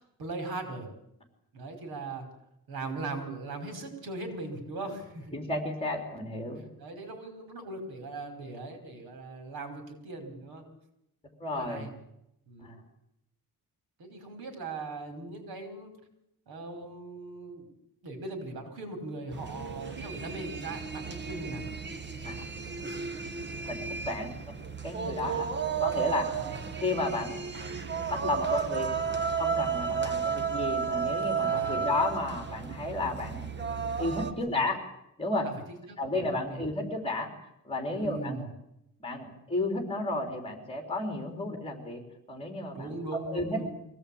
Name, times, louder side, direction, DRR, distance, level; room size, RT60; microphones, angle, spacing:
voice 1, 0.2-0.9 1.5-2.3 2.7-5.4 6.8-10.7 11.5-11.9 12.5-12.8 14.0-16.0 16.5-17.7 18.0-21.6 26.3-26.6 31.4-31.8 34.3-34.6 35.4-36.6 37.9-38.5 42.7-43.8, right 3 dB, 85° right, 6 dB, 5.2 m, -39 dB
voice 2, 5.3-6.6 11.4-11.9 12.6-12.8 16.7-16.9 22.2-22.4 23.7-23.8 24.1-24.3 24.8-25.5 25.8-26.2 26.8-27.4 28.1-28.9 29.3-33.5 34.0-34.8 35.2-35.5 36.0-37.3 37.6-38.5 39.0-42.0 42.3-43.6, left 2 dB, 15° left, 4 dB, 3.7 m, -32 dB
sound 1, 19.3-34.3, right 6 dB, 30° right, 1.4 m, -33 dB
23.5 x 17.0 x 8.7 m, 0.82 s
wide cardioid pair, 170°, 36 cm